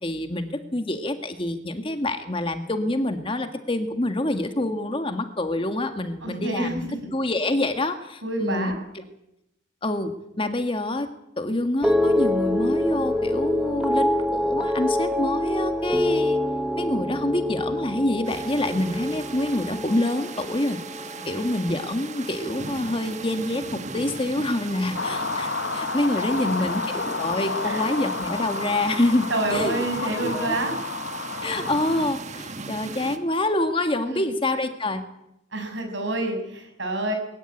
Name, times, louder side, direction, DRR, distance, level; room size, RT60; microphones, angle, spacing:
voice 1, 0.0-8.7 9.8-11.1 11.4-16.4 16.7-20.8 21.3-30.6 31.4-35.0, left 1 dB, 25° left, 7 dB, 1.7 m, -26 dB
voice 2, 6.2-6.7 7.0-7.1 8.2-8.7 21.2-21.3 27.6-27.8 29.3-30.8 34.1-34.3 35.5-37.1, right 2 dB, 65° right, 4 dB, 6.3 m, -28 dB
sound 1, 11.8-22.2 22.5-23.0, left 1 dB, 5° right, 1.1 m, -26 dB
sound 2, 18.2-33.2, right 3 dB, 35° right, 1.5 m, -37 dB
sound 3, 24.9-32.1, left 4 dB, 60° left, 1.2 m, -30 dB
22.0 x 14.5 x 9.9 m, 0.84 s
head